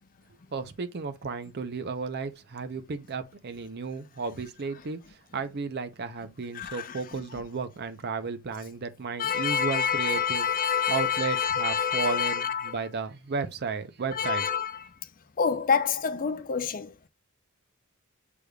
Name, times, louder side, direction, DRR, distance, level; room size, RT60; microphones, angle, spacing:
voice 1, 0.5-10.5 10.9-14.5, right 4 dB, 50° right, 0.6 m, -33 dB
voice 2, 6.5-7.0 9.2-12.8 14.1-14.8 15.4-17.1, left 7 dB, 40° left, 0.4 m, -27 dB
6.4 x 3.4 x 2.3 m
head